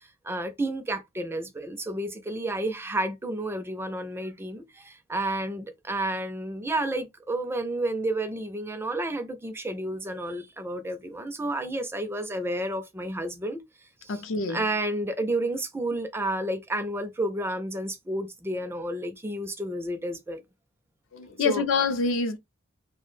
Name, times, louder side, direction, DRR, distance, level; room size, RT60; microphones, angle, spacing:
voice 1, 0.2-13.6 14.0-14.1 14.5-20.4 21.4-21.6, right 1 dB, 10° right, 0.4 m, -31 dB
voice 2, 14.1-14.7 21.1-22.4, left 4 dB, 65° left, 0.5 m, -26 dB
2.3 x 2.1 x 3.1 m
head